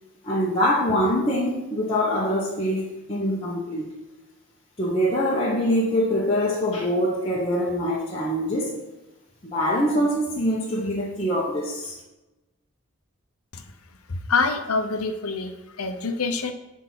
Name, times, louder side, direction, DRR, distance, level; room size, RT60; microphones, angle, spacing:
voice 1, 0.2-3.9 4.8-8.8 9.4-12.0, equal, 25° left, -6 dB, 1.1 m, -24 dB
voice 2, 14.1-16.5, left 4 dB, 85° left, 7 dB, 0.9 m, -26 dB
9.7 x 3.7 x 6.1 m, 1.0 s
head